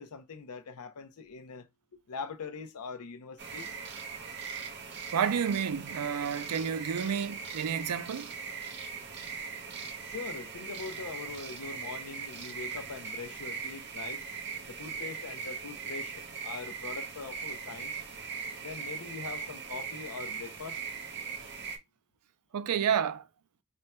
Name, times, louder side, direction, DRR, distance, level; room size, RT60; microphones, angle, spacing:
voice 1, 0.0-1.7 2.1-3.8 10.0-14.2 14.7-17.9 18.6-20.8, left 5 dB, 80° left, 0.6 m, -42 dB
sound 1, 3.4-21.8, right 6 dB, 50° right, 0.8 m, -40 dB
voice 2, 5.1-8.3 22.5-23.2, right 7 dB, 85° right, 0.4 m, -30 dB
3.4 x 2.2 x 4.1 m
head